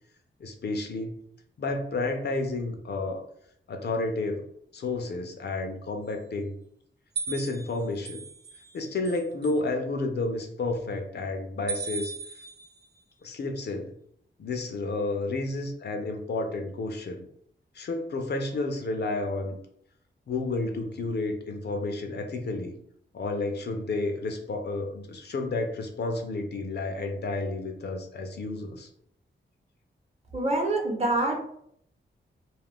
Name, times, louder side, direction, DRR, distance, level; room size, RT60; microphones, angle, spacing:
voice 1, 0.4-1.2 1.6-3.2 3.7-4.4 4.7-6.5 7.3-8.2 8.7-12.1 13.2-13.9 14.4-17.3 17.7-19.6 20.3-22.7 23.1-28.9, left 2 dB, 55° left, 4 dB, 0.5 m, -31 dB
sound 1, 7.2-8.7 9.1-9.5 11.7-12.9, right 5 dB, 55° right, 0.6 m, -36 dB
voice 2, 30.3-31.4, right 2 dB, 30° right, 0 dB, 0.9 m, -26 dB
2.3 x 2.1 x 3.5 m, 0.68 s
cardioid pair, 70°, 20 cm